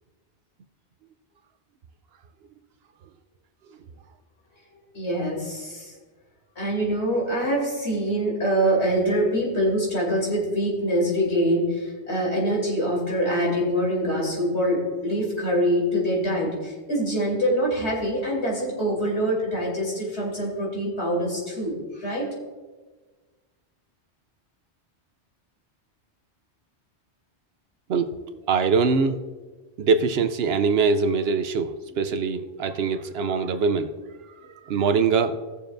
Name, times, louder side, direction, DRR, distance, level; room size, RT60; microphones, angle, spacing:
voice 1, 4.9-5.9 6.5-22.3, equal, 70° left, -3 dB, 3.2 m, -24 dB
voice 2, 27.9-29.2 29.8-33.9 34.4-35.4, right 5 dB, 65° right, 10 dB, 0.8 m, -23 dB
18.0 x 6.9 x 2.6 m, 1.3 s
omnidirectional pair, 1.2 m